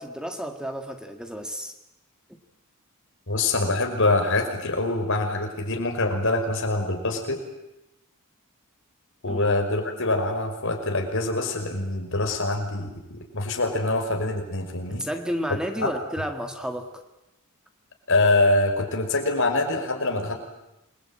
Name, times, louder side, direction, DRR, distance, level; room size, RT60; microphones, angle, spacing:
voice 1, 0.0-1.7 9.2-9.5 14.9-17.0, equal, 5° right, 5 dB, 1.9 m, -32 dB
voice 2, 3.3-7.4 9.2-15.1 15.8-15.9 18.1-20.3, left 2 dB, 65° left, 3 dB, 5.6 m, -24 dB
27.5 x 22.5 x 8.9 m, 0.91 s
head